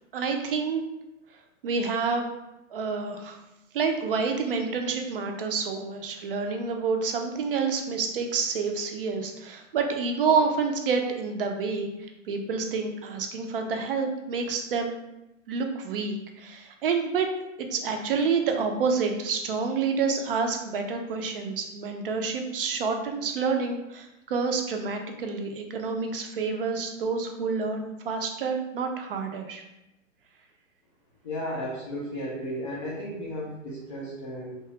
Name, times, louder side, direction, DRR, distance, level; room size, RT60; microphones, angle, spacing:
voice 1, 0.1-0.8 1.6-2.3 2.7-3.4 3.7-15.0 15.5-17.3 17.6-29.6, right 5 dB, 45° right, 4 dB, 0.5 m, -28 dB
voice 2, 31.2-34.6, equal, 25° left, -6 dB, 0.3 m, -34 dB
2.9 x 2.3 x 2.9 m, 0.92 s
figure-of-eight pair, 110°, 40 cm